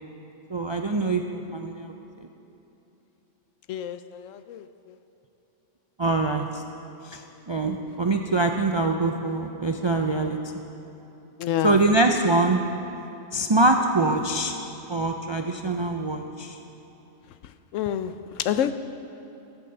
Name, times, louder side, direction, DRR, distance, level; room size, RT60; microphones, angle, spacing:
voice 1, 0.5-1.9 6.0-6.6 7.0-7.2 7.5-10.4 11.6-12.6 13.3-14.5 14.9-16.6, right 2 dB, 50° right, 3 dB, 0.3 m, -24 dB
voice 2, 3.7-4.7 11.4-11.9 17.7-18.7, left 10 dB, 85° left, 12 dB, 1.0 m, -28 dB
14.5 x 8.2 x 6.8 m, 3.0 s
omnidirectional pair, 1.3 m